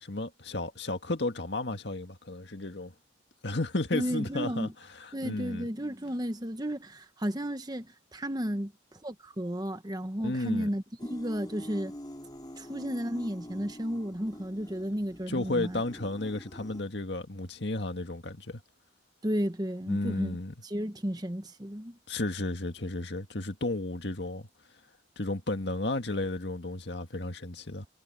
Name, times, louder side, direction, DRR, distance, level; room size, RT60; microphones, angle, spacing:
voice 1, 0.0-2.9 3.4-4.7 5.0-5.7 10.2-10.7 15.3-18.6 19.9-20.5 22.1-24.5 25.2-27.9, left 2 dB, 60° left, 2.0 m, -33 dB
voice 2, 3.9-4.7 5.1-11.9 12.6-15.8 19.2-20.4 20.6-22.0, equal, 20° right, 1.3 m, -33 dB
sound 1, 11.0-16.8, equal, 20° left, 5.0 m, -45 dB
head